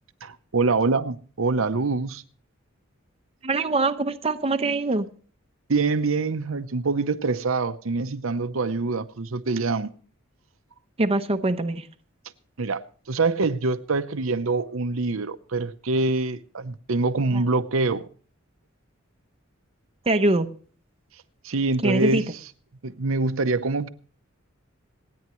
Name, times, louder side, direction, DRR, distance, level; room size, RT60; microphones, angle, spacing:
voice 1, 0.2-2.2 5.7-9.9 12.6-18.1 21.4-22.3 22.8-23.9, right 3 dB, 75° right, 0.8 m, -25 dB
voice 2, 3.4-5.1 11.0-11.9 17.3-17.4 20.1-20.5 21.8-22.2, right 2 dB, 30° right, 0.8 m, -23 dB
26.5 x 9.5 x 3.1 m
head